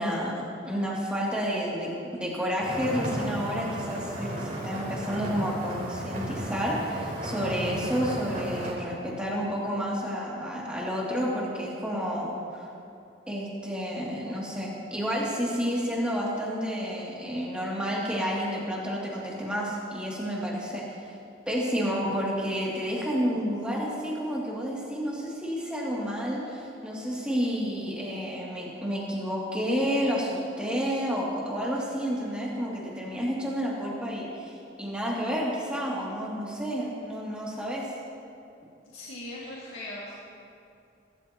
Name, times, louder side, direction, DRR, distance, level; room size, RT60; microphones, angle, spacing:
voice 1, 0.0-12.7 13.3-21.1 21.5-34.5 34.8-37.9, equal, 5° right, -6 dB, 2.8 m, -30 dB
sound 1, 2.6-8.7, right 1 dB, 40° right, 3.7 m, -34 dB
voice 2, 38.9-40.2, left 1 dB, 90° left, -7 dB, 2.2 m, -39 dB
23.5 x 13.5 x 3.1 m, 2.6 s
head